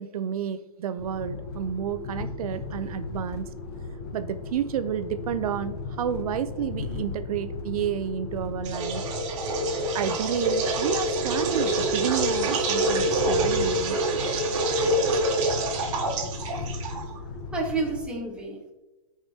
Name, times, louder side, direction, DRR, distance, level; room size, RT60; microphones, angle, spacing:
voice 1, 0.0-3.5 4.1-9.0 9.9-14.0, right 9 dB, 70° right, 12 dB, 0.5 m, -30 dB
sound 1, 1.0-18.1, left 3 dB, 40° left, 1.0 m, -36 dB
sound 2, 8.6-17.2, right 2 dB, 55° right, 1.4 m, -26 dB
voice 2, 17.5-18.7, right 3 dB, 5° right, -2 dB, 1.1 m, -30 dB
14.0 x 4.7 x 2.8 m, 1.1 s
hypercardioid pair, 160°, 19 cm